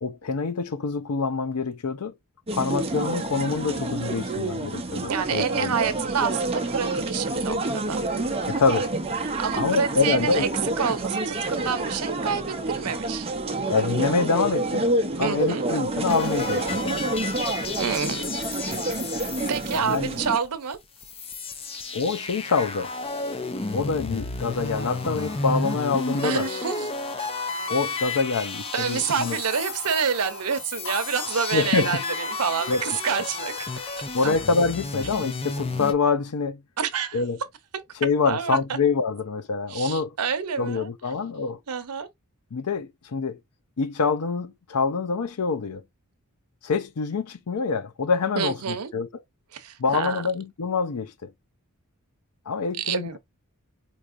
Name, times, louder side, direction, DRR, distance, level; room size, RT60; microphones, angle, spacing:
voice 1, 0.0-2.1 2.5-5.7 8.5-8.9 9.6-10.4 13.7-14.9 15.2-17.0 19.7-20.1 21.9-22.9 23.7-26.5 27.7-29.4 31.5-32.0 32.7-32.8 34.1-36.6 37.1-37.4 38.0-40.2 40.6-41.6 42.5-43.4 43.8-45.8 46.6-49.1 49.8-51.3 52.5-53.2, left 4 dB, 75° left, 0.5 m, -26 dB
sound 1, 2.5-20.4, right 2 dB, 25° right, 0.6 m, -28 dB
voice 2, 5.1-8.0 9.4-10.5 10.8-13.3 15.2-15.7 17.8-18.2 19.5-20.8 26.2-27.3 28.7-33.5 34.0-34.3 36.8-37.2 38.2-38.6 39.7-40.9 41.7-42.1 48.4-48.9 49.5-50.2 52.8-53.2, right 6 dB, 85° right, 0.7 m, -28 dB
sound 2, 16.1-20.5 20.7-20.8 21.0-35.9, left 3 dB, 25° left, 0.5 m, -32 dB
sound 3, 24.5-34.7, left 3 dB, 55° left, 1.0 m, -41 dB
4.7 x 2.8 x 2.5 m
head